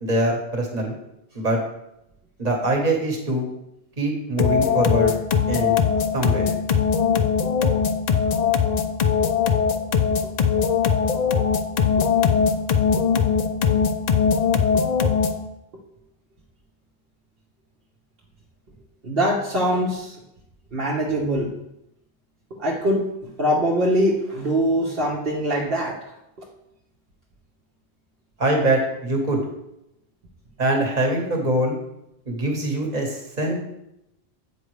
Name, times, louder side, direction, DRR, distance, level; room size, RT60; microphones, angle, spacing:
voice 1, 0.0-1.0 1.3-1.6 2.4-3.5 4.0-5.1 5.5-5.8 6.1-6.5 28.4-29.4 30.6-31.8 32.3-33.5, right 1 dB, 40° right, 1 dB, 1.4 m, -23 dB
sound 1, 4.4-15.5, left 6 dB, 55° left, 0.5 m, -21 dB
voice 2, 19.0-20.2 20.7-21.5 22.5-23.1 23.4-26.0 26.4-26.5, equal, 60° right, -4 dB, 1.2 m, -23 dB
8.0 x 5.1 x 3.2 m, 0.85 s
omnidirectional pair, 1.1 m